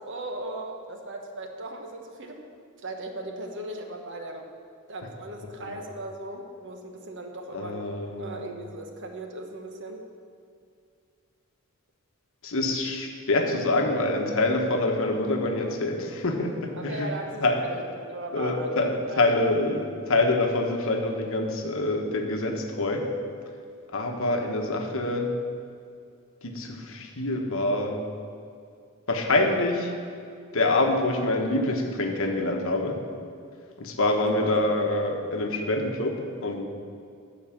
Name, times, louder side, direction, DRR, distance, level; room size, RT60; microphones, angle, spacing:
voice 1, 0.0-2.4 2.8-4.4 4.9-7.8 8.2-10.0 16.7-19.4 34.4-34.5, right 1 dB, 55° right, 3 dB, 1.1 m, -37 dB
voice 2, 7.5-8.4 12.4-17.1 17.4-17.6 18.3-23.1 23.9-25.3 26.4-28.0 29.1-29.9 30.5-33.0 33.8-36.7, left 2 dB, 65° left, 3 dB, 1.2 m, -26 dB
12.5 x 4.8 x 7.3 m, 2.3 s
head